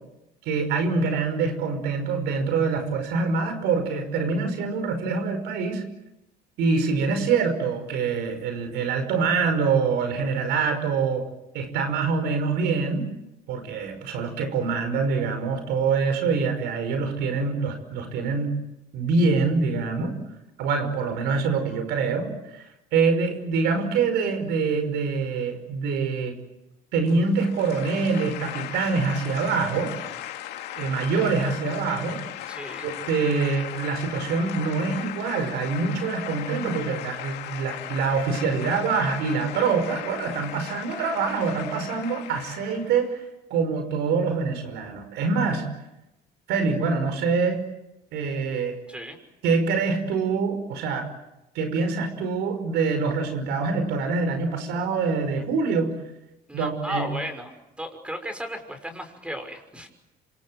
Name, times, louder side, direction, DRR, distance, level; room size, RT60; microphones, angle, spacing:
voice 1, 0.5-5.8 6.6-11.2 11.5-13.0 13.5-18.5 18.9-20.1 20.6-22.6 22.9-26.3 26.9-29.9 30.8-32.2 32.8-43.2 43.5-45.6 46.5-47.6 48.1-48.8 49.4-51.1 51.5-55.9 56.5-57.1, right 4 dB, 85° right, 8 dB, 5.6 m, -25 dB
sound 1, 27.1-43.1, left 12 dB, 85° left, 2.6 m, -37 dB
voice 2, 32.5-32.9 48.9-49.2 56.5-59.9, equal, 5° right, 7 dB, 5.9 m, -35 dB
27.0 x 26.5 x 7.9 m, 0.92 s
cardioid pair, 110°, 17 cm